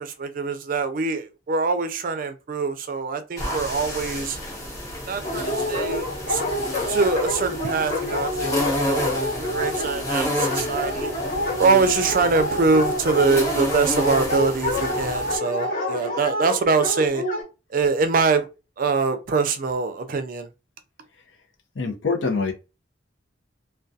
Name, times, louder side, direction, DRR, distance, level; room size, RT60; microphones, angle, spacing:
voice 1, 0.0-4.4 5.1-6.5 6.9-11.1 11.6-17.2 17.7-18.5 18.8-20.5, right 4 dB, 50° right, 0.4 m, -23 dB
sound 1, 3.4-15.4, equal, 20° left, 0.9 m, -30 dB
Dog, 5.2-17.4, left 1 dB, 50° left, 1.2 m, -27 dB
voice 2, 21.7-22.5, left 4 dB, 75° left, 0.6 m, -24 dB
2.3 x 2.2 x 2.6 m
head